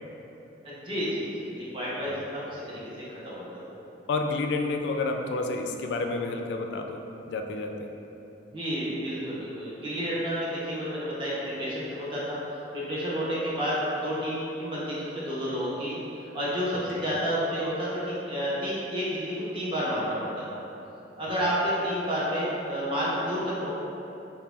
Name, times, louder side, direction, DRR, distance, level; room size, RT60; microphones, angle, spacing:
voice 1, 0.6-2.8 3.2-3.8 8.5-12.4 12.7-16.0 16.3-20.6 21.2-23.7, equal, 30° right, -8 dB, 0.8 m, -30 dB
voice 2, 4.1-7.0 7.3-7.9 16.9-17.1, left 3 dB, 65° left, 4 dB, 0.3 m, -30 dB
5.6 x 2.2 x 2.4 m, 3.0 s
head